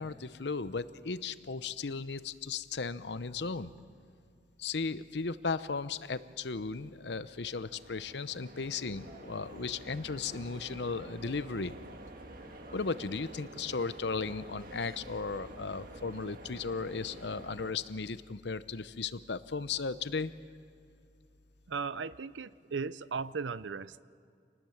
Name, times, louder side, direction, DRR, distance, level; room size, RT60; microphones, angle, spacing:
voice 1, 0.0-3.7 4.6-11.7 12.7-20.3, left 4 dB, 70° left, 14 dB, 0.8 m, -36 dB
sound 1, 6.8-17.7, right 1 dB, 50° right, 1.7 m, -49 dB
voice 2, 21.7-24.0, right 5 dB, 85° right, 17 dB, 0.6 m, -37 dB
28.0 x 19.5 x 7.2 m, 2.3 s
head